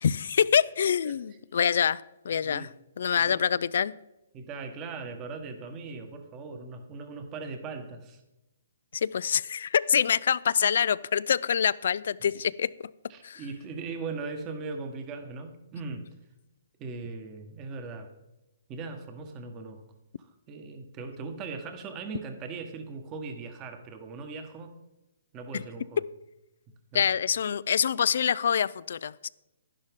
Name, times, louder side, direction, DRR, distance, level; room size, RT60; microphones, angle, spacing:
voice 1, 0.0-2.7 3.0-4.0 8.9-12.9 13.2-13.4 25.5-25.6 26.9-29.3, left 7 dB, 65° left, 20 dB, 0.3 m, -26 dB
voice 2, 1.0-1.4 2.4-2.7 3.2-3.4 4.3-8.2 13.1-16.1 16.8-18.1 18.7-19.8 20.2-24.7 25.3-26.0 26.9-27.1, right 4 dB, 25° right, 6 dB, 1.3 m, -39 dB
11.5 x 11.0 x 3.6 m, 0.95 s
hypercardioid pair, 145°, 0 cm